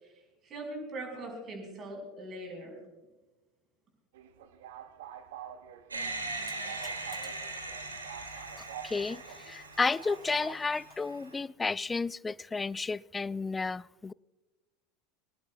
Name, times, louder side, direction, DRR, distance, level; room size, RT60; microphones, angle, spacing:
voice 1, 0.0-2.8, right 1 dB, 35° right, 5.6 m, -41 dB
sound 1, 4.1-10.6, right 10 dB, 60° right, 1.1 m, -47 dB
sound 2, 5.9-11.4, right 2 dB, 80° right, 2.4 m, -40 dB
voice 2, 8.2-14.1, left 4 dB, 15° left, 0.3 m, -32 dB
23.5 x 18.5 x 2.4 m
figure-of-eight pair, 75°, 0 cm